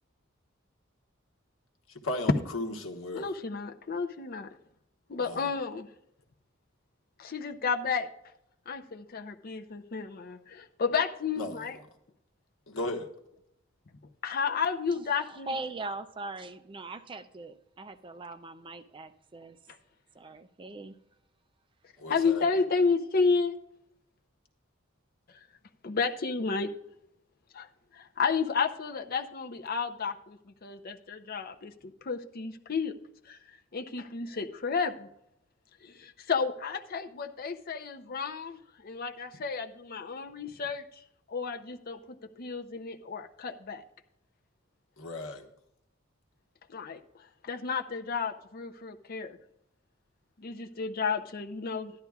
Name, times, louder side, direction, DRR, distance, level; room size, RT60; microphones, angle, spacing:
voice 1, 2.0-3.3 5.2-5.5 11.4-11.6 12.7-13.1 22.0-22.4 45.0-45.5, left 2 dB, 80° left, 4 dB, 1.2 m, -35 dB
voice 2, 3.1-4.5 5.1-5.9 7.2-8.1 8.7-11.8 14.2-15.5 22.1-23.6 25.8-26.7 27.5-27.7 27.9-31.7 32.0-32.9 33.3-33.4 33.7-35.1 35.8-41.0 41.3-43.8 46.7-47.0 47.4-49.4 50.4-51.9, left 5 dB, 50° left, 5 dB, 0.6 m, -31 dB
voice 3, 15.2-19.6 20.1-20.9 22.0-22.1, right 2 dB, 25° right, 10 dB, 0.4 m, -41 dB
13.0 x 10.5 x 2.4 m, 0.80 s
head